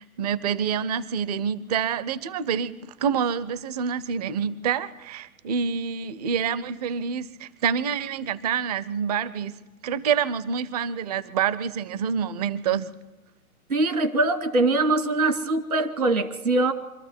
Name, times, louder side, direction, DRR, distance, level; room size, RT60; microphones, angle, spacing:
voice 1, 0.0-9.6 9.8-12.9, right 7 dB, 30° right, 18 dB, 0.5 m, -27 dB
voice 2, 13.7-16.7, right 2 dB, 75° right, 7 dB, 2.2 m, -22 dB
25.0 x 13.0 x 7.9 m, 1.2 s
figure-of-eight pair, 125°, 43 cm